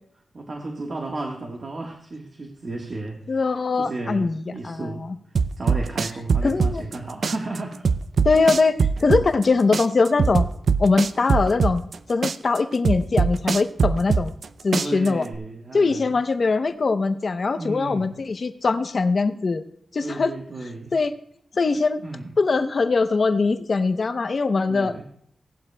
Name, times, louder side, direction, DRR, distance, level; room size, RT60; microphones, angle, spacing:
voice 1, 0.3-5.1 5.6-7.9 9.1-9.2 14.7-16.1 17.6-18.2 20.0-20.9 22.0-22.3 24.7-25.0, right 2 dB, 45° right, 1 dB, 1.4 m, -34 dB
voice 2, 3.3-5.1 6.4-6.8 8.2-10.5 10.8-11.8 12.1-14.3 14.6-15.3 15.7-19.6 19.9-20.3 20.9-21.1 21.6-22.0 22.4-24.9, left 4 dB, 50° left, 9 dB, 0.7 m, -22 dB
sound 1, 5.4-7.0 7.2-9.5 9.7-12.0 12.2-14.5 14.7-15.4, right 5 dB, 65° right, 0.4 m, -21 dB
17.5 x 11.5 x 2.2 m, 0.68 s
wide cardioid pair, 115°, 0 cm